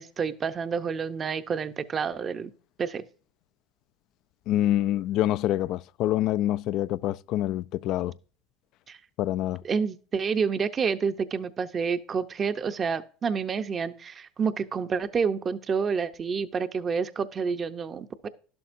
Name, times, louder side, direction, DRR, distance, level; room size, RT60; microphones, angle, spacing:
voice 1, 0.0-2.5 2.8-3.0 8.9-9.0 9.6-18.3, right 6 dB, 30° right, 0.6 m, -29 dB
voice 2, 4.5-8.2 9.2-9.6, left 13 dB, 55° left, 0.3 m, -26 dB
12.0 x 11.5 x 2.6 m
supercardioid pair, 115°, 0 cm